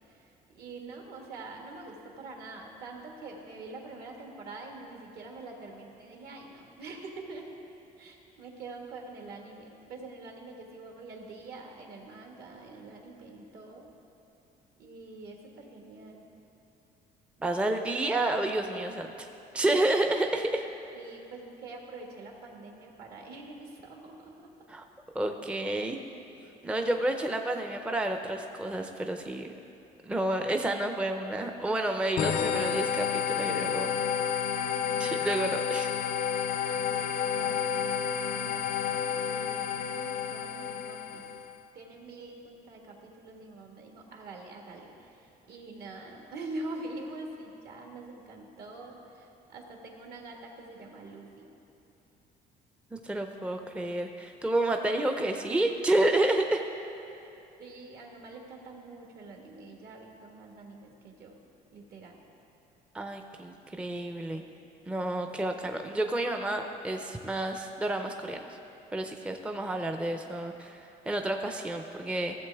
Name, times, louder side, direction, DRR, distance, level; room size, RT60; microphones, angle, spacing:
voice 1, 0.1-7.5 8.0-13.9 14.8-16.3 20.9-24.5 28.1-28.2 34.6-35.3 36.6-41.3 41.7-51.5 57.6-61.4 61.7-62.2, right 2 dB, 65° right, 1 dB, 1.7 m, -45 dB
voice 2, 17.4-19.3 19.5-20.6 24.7-24.8 25.1-26.0 26.6-29.5 30.0-33.9 35.0-35.9 52.9-56.6 62.9-64.4 64.9-68.6 68.9-72.3, right 1 dB, 5° right, 5 dB, 0.5 m, -30 dB
sound 1, 32.2-41.5, left 7 dB, 55° left, 0.5 m, -30 dB
15.5 x 7.5 x 3.4 m, 2.8 s
cardioid pair, 110°, 17 cm